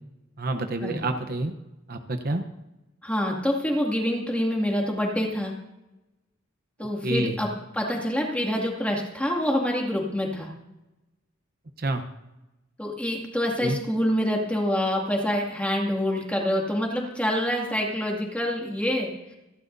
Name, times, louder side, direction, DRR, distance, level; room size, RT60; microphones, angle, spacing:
voice 1, 0.4-1.5 1.9-2.4 7.0-7.4 11.8-12.0 13.6-13.8, right 2 dB, 50° right, 7 dB, 0.9 m, -28 dB
voice 2, 3.0-5.6 6.8-7.5 7.7-10.5 12.8-19.3, equal, 5° left, -1 dB, 2.3 m, -26 dB
28.0 x 12.0 x 2.7 m, 0.98 s
head